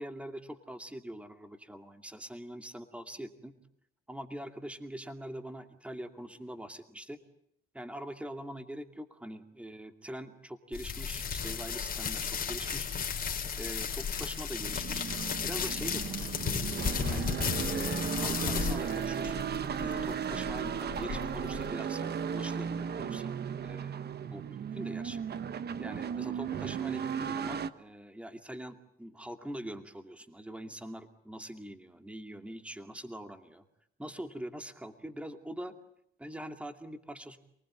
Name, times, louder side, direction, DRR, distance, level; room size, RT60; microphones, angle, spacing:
voice 1, 0.0-3.5 4.1-7.2 7.7-12.9 13.6-15.0 15.4-16.6 17.1-17.3 17.7-19.5 19.8-23.4 23.6-25.2 25.8-33.6 34.0-35.7 36.2-37.4, right 1 dB, 5° right, 6 dB, 2.4 m, -43 dB
sound 1, 10.7-21.7, left 6 dB, 50° left, 3.4 m, -35 dB
sound 2, 11.3-17.1, right 6 dB, 90° right, 4.3 m, -56 dB
sound 3, 14.6-27.7, right 7 dB, 55° right, 1.2 m, -35 dB
28.5 x 19.5 x 8.9 m, 0.73 s
cardioid pair, 90°, 20 cm